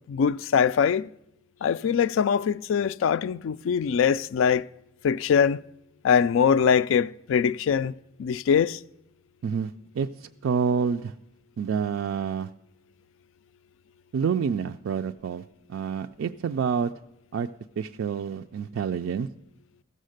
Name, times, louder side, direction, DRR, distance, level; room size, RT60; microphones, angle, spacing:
voice 1, 0.1-1.1 1.6-4.6 5.0-5.6 6.0-7.9 8.2-8.8, left 7 dB, 80° left, 0.3 m, -22 dB
voice 2, 9.4-11.1 11.6-12.5 14.1-15.4 15.7-16.9 17.3-17.5 17.8-19.3, right 6 dB, 80° right, 0.3 m, -28 dB
15.0 x 6.5 x 6.5 m
head